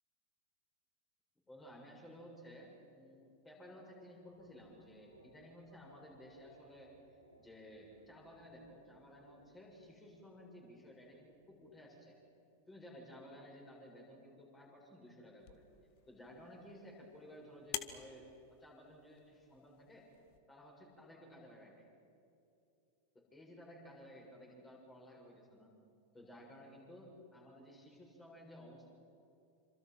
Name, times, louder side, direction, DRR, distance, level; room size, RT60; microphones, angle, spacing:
voice 1, 1.5-12.2 12.7-15.6 16.1-18.3 18.6-20.1 20.5-21.9 23.3-25.7 26.1-28.9, equal, 10° left, -1 dB, 7.5 m, -55 dB
sound 1, 4.2-11.7, right 1 dB, 85° right, 3.1 m, -66 dB
sound 2, 15.4-20.4, left 12 dB, 45° left, 1.4 m, -50 dB
28.0 x 26.5 x 5.9 m, 2.8 s
figure-of-eight pair, 90°, 0 cm